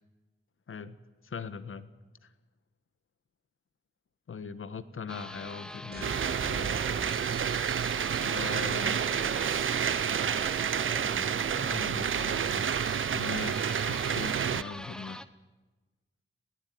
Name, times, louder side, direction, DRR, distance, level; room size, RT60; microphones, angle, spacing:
voice 1, 1.2-1.9 4.3-6.9 8.2-9.0 11.7-12.7 13.1-15.2, left 5 dB, 80° left, 14 dB, 1.5 m, -40 dB
sound 1, 5.1-15.3, equal, 5° left, 1.0 m, -43 dB
sound 2, 5.9-8.8, right 2 dB, 50° right, 2.6 m, -44 dB
sound 3, 6.0-14.6, right 8 dB, 75° right, 0.6 m, -29 dB
21.5 x 18.0 x 9.4 m, 1.2 s
wide cardioid pair, 140°, 21 cm